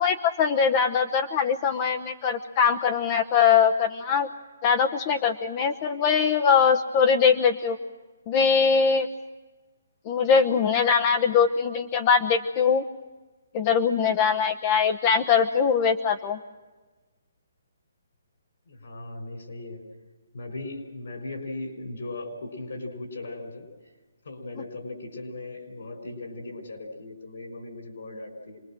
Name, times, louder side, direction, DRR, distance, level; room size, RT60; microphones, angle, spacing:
voice 1, 0.0-4.3 4.6-7.8 8.3-9.1 10.1-12.8 13.5-16.4, left 6 dB, 30° left, 5 dB, 1.0 m, -22 dB
voice 2, 18.7-19.8 20.3-23.7 24.2-28.6, left 2 dB, 70° left, 5 dB, 5.9 m, -38 dB
26.5 x 20.5 x 7.7 m, 1.3 s
hypercardioid pair, 155°, 0 cm